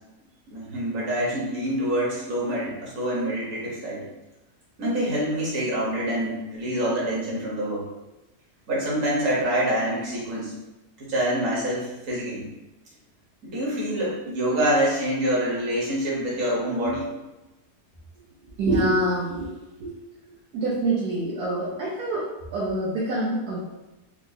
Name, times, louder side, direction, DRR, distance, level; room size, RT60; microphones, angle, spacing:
voice 1, 0.5-4.1 4.8-7.8 8.7-10.5 11.0-12.5 13.4-17.1, right 1 dB, 55° right, -6 dB, 1.5 m, -26 dB
voice 2, 18.6-19.5 19.8-19.9 20.5-23.6, right 2 dB, 70° right, -7 dB, 1.2 m, -25 dB
4.7 x 2.1 x 2.7 m, 1.0 s
omnidirectional pair, 1.7 m